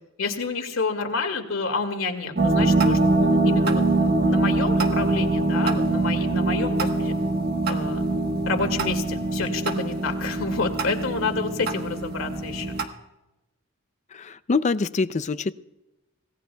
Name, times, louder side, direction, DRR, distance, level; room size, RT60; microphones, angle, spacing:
voice 1, 0.2-7.2 7.7-8.0 8.5-12.7, left 4 dB, 80° left, 5 dB, 2.2 m, -29 dB
sound 1, 2.4-12.8, right 2 dB, 50° right, 1.2 m, -23 dB
voice 2, 14.1-15.5, left 4 dB, 35° left, 14 dB, 0.5 m, -25 dB
25.5 x 17.5 x 2.3 m, 0.98 s
head